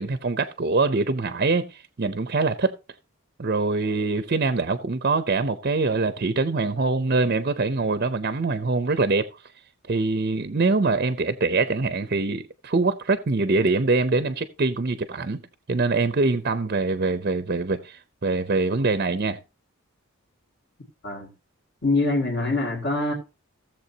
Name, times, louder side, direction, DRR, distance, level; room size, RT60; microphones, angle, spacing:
voice 1, 0.0-2.7 3.4-9.3 9.9-15.4 15.7-19.4, right 3 dB, 45° right, 0.6 m, -24 dB
voice 2, 21.8-23.1, left 2 dB, 60° left, 2.2 m, -24 dB
16.5 x 7.2 x 2.8 m
head